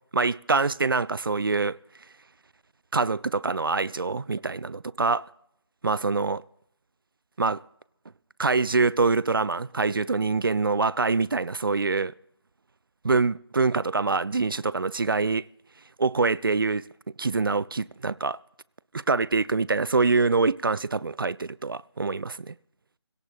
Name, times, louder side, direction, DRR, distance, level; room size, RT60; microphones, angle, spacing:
voice 1, 0.1-1.8 2.9-5.3 5.8-6.4 7.4-7.6 8.4-12.1 13.0-15.4 16.0-16.9 17.2-18.4 18.9-22.5, right 4 dB, 55° right, 0.4 m, -25 dB
20.0 x 17.5 x 2.5 m
figure-of-eight pair, 160°, 14 cm